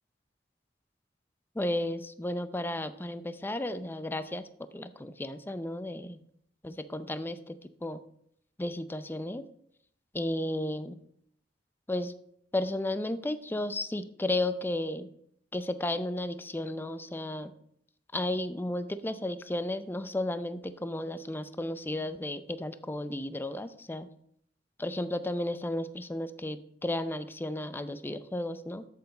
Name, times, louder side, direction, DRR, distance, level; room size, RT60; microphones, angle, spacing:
voice 1, 1.6-4.4 4.7-6.2 6.6-8.0 8.6-9.4 10.1-11.0 11.9-12.1 12.5-15.1 15.5-17.5 18.1-24.1 24.8-28.9, left 1 dB, 10° left, 11 dB, 0.5 m, -33 dB
13.0 x 7.0 x 3.9 m, 0.70 s
head